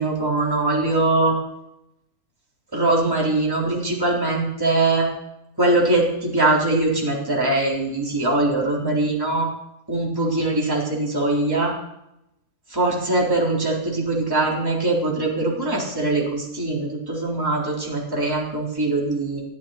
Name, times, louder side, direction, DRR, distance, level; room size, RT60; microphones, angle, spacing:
voice 1, 0.0-1.4 2.7-5.1 5.6-9.5 9.9-11.7 12.7-19.4, right 2 dB, 10° right, -4 dB, 4.0 m, -22 dB
22.5 x 13.5 x 4.4 m, 0.85 s
omnidirectional pair, 1.9 m